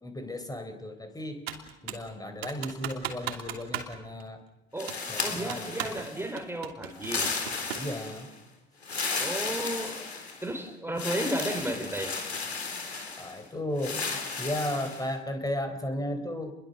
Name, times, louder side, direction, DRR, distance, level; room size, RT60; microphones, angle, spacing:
voice 1, 0.0-1.5 1.8-4.4 5.1-6.0 7.8-8.3 13.2-14.0 14.4-16.5, left 1 dB, 10° left, 4.1 m, -34 dB
Computer keyboard, 1.5-2.1 2.4-4.2 4.9-6.1 6.4-7.9, right 9 dB, 75° right, 3.0 m, -37 dB
voice 2, 4.7-7.3 9.2-10.1 10.4-12.2, right 1 dB, 5° right, 3.8 m, -33 dB
sound 1, 4.8-6.3 7.0-8.3 8.8-10.5 11.0-13.4 13.8-15.0, left 4 dB, 85° left, 3.9 m, -34 dB
29.5 x 22.0 x 6.7 m
figure-of-eight pair, 70°, 31 cm